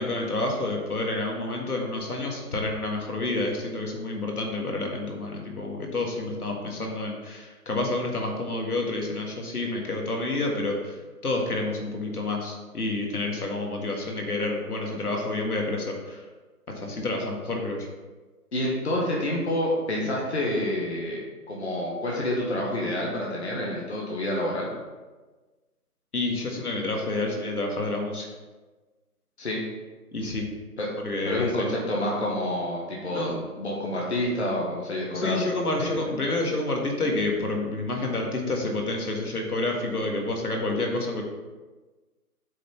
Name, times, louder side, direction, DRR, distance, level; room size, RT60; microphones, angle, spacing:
voice 1, 0.0-11.0 11.2-16.2 16.8-17.9 26.1-28.3 30.1-30.5 31.0-31.7 33.1-33.4 35.1-41.2, left 2 dB, 75° left, 0 dB, 1.8 m, -29 dB
voice 2, 18.5-21.2 21.5-24.7 29.4-29.6 30.8-30.9 31.2-35.4 35.6-35.9, left 1 dB, 45° left, -3 dB, 1.4 m, -28 dB
8.4 x 3.5 x 5.6 m, 1.3 s
hypercardioid pair, 175°, 46 cm